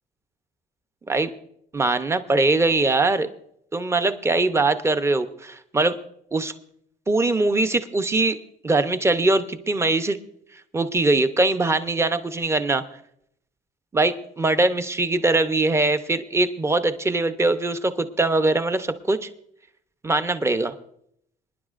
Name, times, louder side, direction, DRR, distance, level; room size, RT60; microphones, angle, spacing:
voice 1, 1.7-3.3 3.7-6.0 6.3-6.5 7.1-8.4 8.6-10.2 10.7-12.8 13.9-19.3 20.0-20.7, right 2 dB, 15° right, 10 dB, 0.7 m, -22 dB
26.5 x 10.0 x 2.5 m, 0.72 s
cardioid pair, 110°, 17 cm